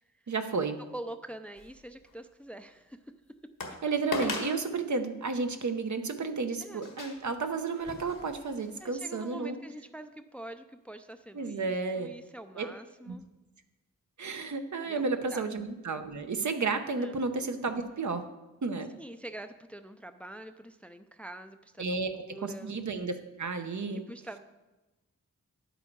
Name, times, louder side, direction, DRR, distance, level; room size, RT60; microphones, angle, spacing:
voice 1, 0.3-0.8 3.8-9.6 11.3-12.1 12.5-12.7 13.1-13.2 14.2-18.3 18.6-18.9 21.8-24.0, right 4 dB, 65° right, 7 dB, 0.9 m, -32 dB
voice 2, 0.9-3.0 6.6-6.9 8.8-13.3 14.8-15.5 17.0-17.2 19.0-21.9 22.1-22.8 23.9-24.4, right 1 dB, 5° left, 9 dB, 0.5 m, -45 dB
sound 1, 1.6-2.1 2.7-2.8 3.6-3.8 4.1-4.6 5.3-5.5 6.8-8.7 9.2-9.3, left 3 dB, 80° left, 1.6 m, -38 dB
9.9 x 8.0 x 4.6 m, 1.1 s
wide cardioid pair, 80°, 32 cm